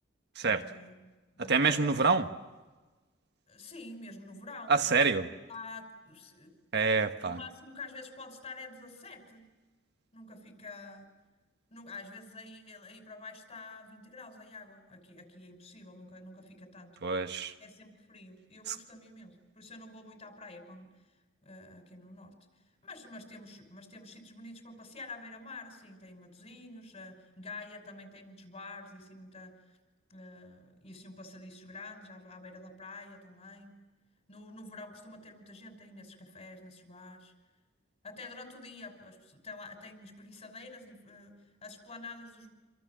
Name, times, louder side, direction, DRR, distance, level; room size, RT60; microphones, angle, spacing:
voice 1, 0.4-2.3 3.5-5.0 5.5-6.6 7.2-9.5 10.1-11.1 11.7-17.0 17.6-21.2 21.4-29.8 30.1-33.7 34.3-37.3 38.0-42.5, left 3 dB, 35° left, 5.8 m, -48 dB
voice 2, 1.5-2.3 4.7-5.3 6.7-7.4 17.0-17.5 18.7-18.8, right 4 dB, 60° right, 1.3 m, -26 dB
28.0 x 27.5 x 7.6 m
head